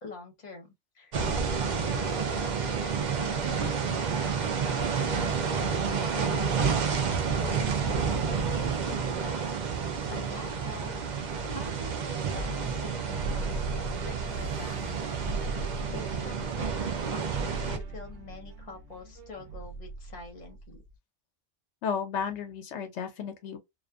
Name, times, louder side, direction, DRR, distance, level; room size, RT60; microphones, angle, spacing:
voice 1, 0.0-5.7 6.1-9.6 10.1-10.9 11.2-20.8, left 2 dB, 40° left, 1.0 m, -45 dB
sound 1, 1.1-17.8, right 6 dB, 55° right, 0.5 m, -30 dB
sound 2, 11.5-20.9, right 3 dB, 80° right, 0.9 m, -38 dB
voice 2, 21.8-23.6, left 7 dB, 80° left, 0.9 m, -33 dB
2.4 x 2.4 x 2.3 m
omnidirectional pair, 1.2 m